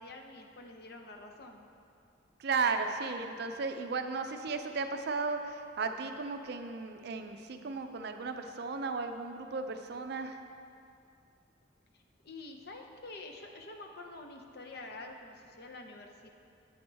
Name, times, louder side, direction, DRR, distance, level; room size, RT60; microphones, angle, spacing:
voice 1, 0.0-1.7 3.9-4.0 11.9-16.3, left 2 dB, 55° left, 3 dB, 0.7 m, -47 dB
voice 2, 2.4-10.4, right 4 dB, 55° right, 7 dB, 0.4 m, -35 dB
8.6 x 8.3 x 3.4 m, 2.5 s
head